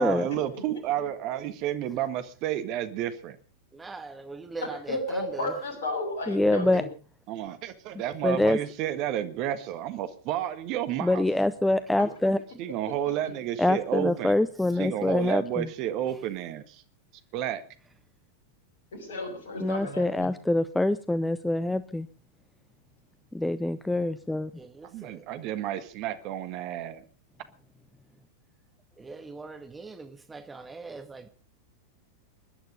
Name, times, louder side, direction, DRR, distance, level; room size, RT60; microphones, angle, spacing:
voice 1, 0.0-3.4 7.3-11.2 12.6-14.4 14.8-16.8 17.3-17.6 24.8-27.0, right 11 dB, 40° right, 1.7 m, -31 dB
voice 2, 3.7-5.5 24.5-25.2 29.0-31.3, right 3 dB, 10° right, 1.8 m, -41 dB
voice 3, 4.6-6.8 18.9-20.3, left 2 dB, 60° left, 6.8 m, -33 dB
voice 4, 6.3-6.8 8.2-8.6 11.0-12.4 13.6-15.7 19.6-22.1 23.3-24.5, left 2 dB, 5° left, 0.7 m, -25 dB
21.5 x 11.5 x 5.3 m
figure-of-eight pair, 90°, 0 cm